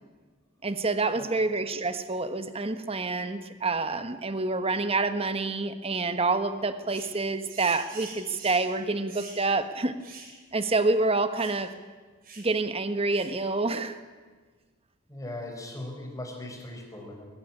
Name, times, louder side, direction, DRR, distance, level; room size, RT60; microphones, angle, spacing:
voice 1, 0.6-9.9 10.5-11.8 12.4-14.0, right 3 dB, 30° right, 11 dB, 1.2 m, -27 dB
sound 1, 6.9-7.2 7.5-8.7 9.1-9.4 10.0-10.3 10.6-10.7 11.3-11.6 12.2-12.5 13.1-13.4, right 4 dB, 45° right, 4.9 m, -45 dB
voice 2, 15.1-17.3, left 1 dB, 15° left, 2 dB, 4.4 m, -39 dB
21.5 x 14.5 x 10.0 m, 1.4 s
head